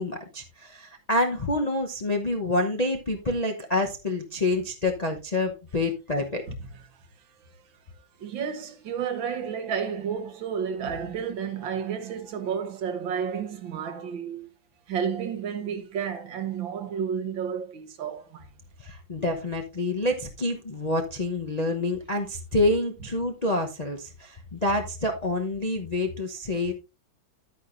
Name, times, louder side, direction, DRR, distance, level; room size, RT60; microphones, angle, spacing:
voice 1, 0.0-6.4 18.8-26.7, left 2 dB, 40° left, 0.6 m, -27 dB
voice 2, 8.2-14.5 14.9-18.5, right 7 dB, 75° right, 1.9 m, -31 dB
10.5 x 9.2 x 2.5 m
omnidirectional pair, 2.1 m